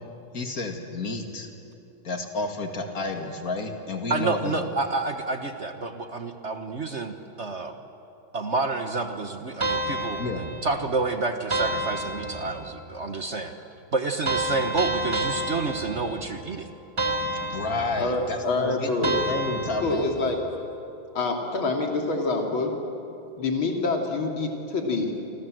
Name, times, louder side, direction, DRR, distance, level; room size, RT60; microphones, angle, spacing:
voice 1, 0.3-1.5 2.0-4.7 10.2-10.4 17.4-20.1, left 3 dB, 40° left, 4 dB, 2.6 m, -31 dB
voice 2, 4.1-7.8 8.3-13.5 13.9-16.7, right 3 dB, 40° right, 7 dB, 1.2 m, -29 dB
sound 1, 9.6-10.9 11.5-12.8 14.2-16.4 17.0-18.3 19.0-20.3, right 1 dB, 15° right, 1.4 m, -29 dB
voice 3, 18.0-19.2 19.8-20.4 21.2-22.7 23.4-25.1, left 3 dB, 65° left, 2 dB, 3.8 m, -26 dB
28.5 x 25.5 x 7.8 m, 2.9 s
omnidirectional pair, 2.4 m